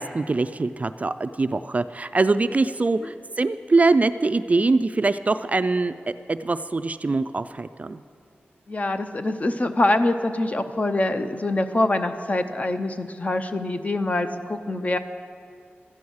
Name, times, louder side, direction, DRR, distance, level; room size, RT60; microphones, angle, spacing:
voice 1, 0.0-5.9 6.3-8.0, right 3 dB, 35° right, 12 dB, 0.3 m, -23 dB
voice 2, 8.7-15.0, left 2 dB, 35° left, 8 dB, 0.7 m, -24 dB
13.0 x 8.5 x 6.3 m, 2.3 s
wide cardioid pair, 75°, 4 cm